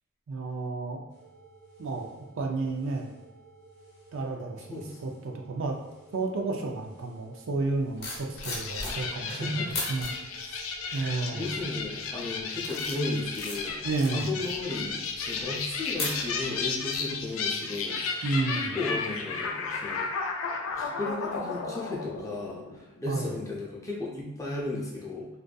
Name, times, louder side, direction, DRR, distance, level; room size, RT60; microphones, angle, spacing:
voice 1, 0.3-1.0 1.8-2.1 2.4-3.1 4.1-5.8 6.1-10.1 10.4-10.6 10.9-11.4 13.8-14.3 18.2-18.7 23.1-23.3, right 3 dB, 70° right, 2 dB, 0.4 m, -31 dB
sound 1, 1.1-19.1, right 3 dB, 35° right, 1.0 m, -55 dB
sound 2, 7.7-9.3 9.7-10.1 10.7-11.1 11.6-11.9 12.4-16.7 16.9-17.2, left 2 dB, 55° left, 0.7 m, -37 dB
sound 3, 8.4-23.0, left 4 dB, 80° left, 0.3 m, -34 dB
voice 2, 8.8-9.7 10.8-13.9 14.1-18.2 18.6-20.1 20.7-25.3, left 2 dB, 15° left, -4 dB, 0.5 m, -35 dB
2.5 x 2.3 x 2.2 m, 0.99 s
head